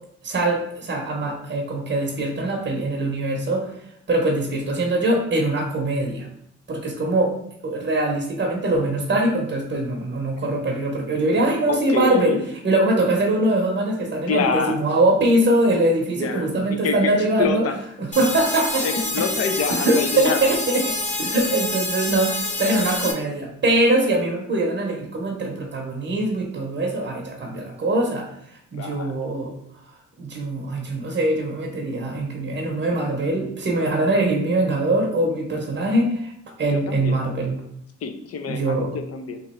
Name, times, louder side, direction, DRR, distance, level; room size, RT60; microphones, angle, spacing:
voice 1, 0.2-3.7 4.1-6.3 6.7-7.3 7.6-12.4 12.6-17.6 18.0-19.0 19.7-20.8 21.2-28.3 28.7-29.5 30.2-36.3 36.6-37.6 38.5-38.9, right 1 dB, 40° right, 0 dB, 0.8 m, -22 dB
voice 2, 11.7-12.4 14.3-14.9 16.2-17.8 18.8-20.4 28.8-29.2 36.7-37.2 38.0-39.4, left 5 dB, 50° left, 7 dB, 0.6 m, -27 dB
sound 1, 18.1-23.1, left 2 dB, 25° left, 0.8 m, -27 dB
3.0 x 2.5 x 4.3 m, 0.73 s
cardioid pair, 90°, 30 cm